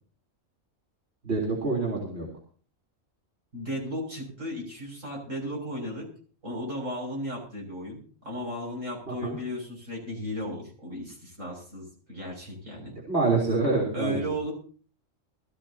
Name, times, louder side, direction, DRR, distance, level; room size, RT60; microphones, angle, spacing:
voice 1, 1.2-2.3 9.1-9.4 13.1-14.2, right 3 dB, 55° right, -4 dB, 4.2 m, -26 dB
voice 2, 3.5-6.1 6.4-13.0 13.9-14.5, equal, 75° right, -2 dB, 7.6 m, -35 dB
22.5 x 14.5 x 2.9 m, 0.42 s
omnidirectional pair, 1.3 m